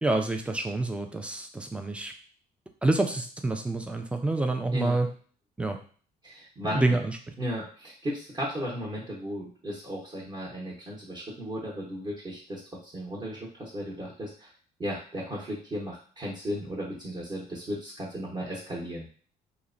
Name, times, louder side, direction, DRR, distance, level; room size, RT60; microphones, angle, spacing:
voice 1, 0.0-2.1 2.8-5.1 5.6-5.8 6.6-7.1, right 2 dB, 5° right, 5 dB, 0.3 m, -27 dB
voice 2, 6.2-7.0 7.4-14.5 14.8-19.1, equal, 25° right, -4 dB, 0.8 m, -35 dB
2.9 x 2.1 x 2.5 m, 0.43 s
cardioid pair, 110°, 17 cm